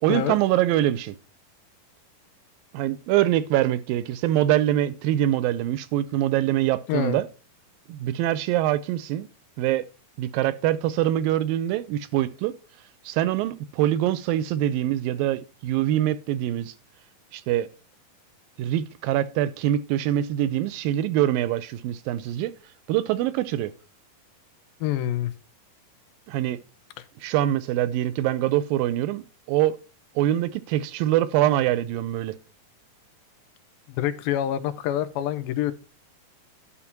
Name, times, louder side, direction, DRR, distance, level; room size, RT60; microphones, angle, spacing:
voice 1, 0.0-1.2 2.7-7.3 7.9-9.3 9.6-9.8 10.2-12.6 13.1-16.7 17.3-17.7 18.6-22.5 22.9-23.7 26.3-26.6 27.2-29.8 30.2-32.4, right 13 dB, 80° right, 2.3 m, -24 dB
voice 2, 24.8-25.3 34.0-35.7, left 11 dB, 90° left, 2.5 m, -26 dB
11.0 x 4.3 x 5.8 m
omnidirectional pair, 4.2 m